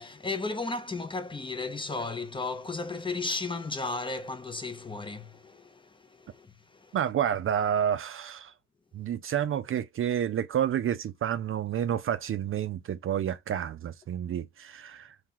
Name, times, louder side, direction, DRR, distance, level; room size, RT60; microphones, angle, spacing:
voice 1, 0.0-7.0, left 3 dB, 15° left, 0.6 m, -35 dB
voice 2, 6.9-8.5 8.9-15.3, right 9 dB, 45° right, 0.4 m, -29 dB
2.9 x 2.8 x 3.7 m
cardioid pair, 90°, 30 cm